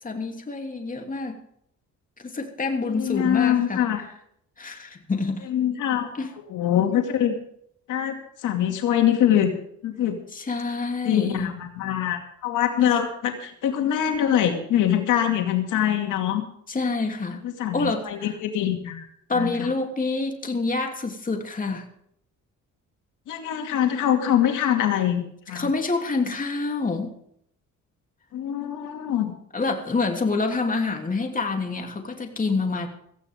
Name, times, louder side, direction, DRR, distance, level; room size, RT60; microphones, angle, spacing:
voice 1, 0.0-1.4 2.2-3.9 4.6-5.5 6.1-6.3 10.3-11.5 16.7-17.4 17.7-18.4 19.3-21.9 25.5-27.2 29.5-32.9, left 3 dB, 25° left, 3 dB, 3.1 m, -27 dB
voice 2, 2.9-4.0 5.5-6.1 6.5-7.3 7.9-8.1 8.4-9.5 9.8-10.2 11.0-16.4 17.6-19.0 19.3-19.7 23.3-25.7 28.3-29.3, left 10 dB, 85° left, 4 dB, 2.4 m, -23 dB
17.5 x 15.5 x 3.7 m, 0.69 s
cardioid pair, 90°, 30 cm